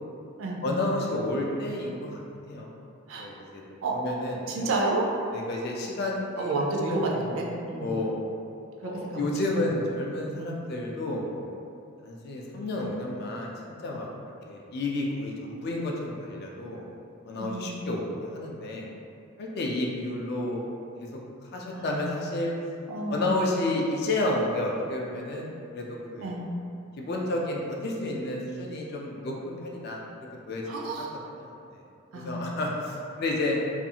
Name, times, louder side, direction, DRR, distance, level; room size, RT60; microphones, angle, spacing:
voice 1, 0.6-2.2 2.5-2.7 3.2-3.6 3.9-4.7 5.3-6.5 6.9-7.0 7.8-8.1 8.8-11.5 12.0-13.5 13.8-14.1 14.5-16.8 17.3-18.9 19.4-20.6 21.5-22.5 23.1-26.3 27.0-30.0 30.5-30.6 31.4-31.8 32.2-33.6, left 2 dB, 50° left, -1 dB, 0.3 m, -31 dB
voice 2, 4.5-5.1 6.4-8.0 8.8-9.3 9.5-9.6 10.4-10.5 17.4-17.8 21.7-22.0 22.9-23.6 26.2-26.4 30.7-31.3 32.1-32.6, right 2 dB, 65° right, -1 dB, 0.4 m, -30 dB
2.4 x 2.3 x 2.7 m, 2.6 s
head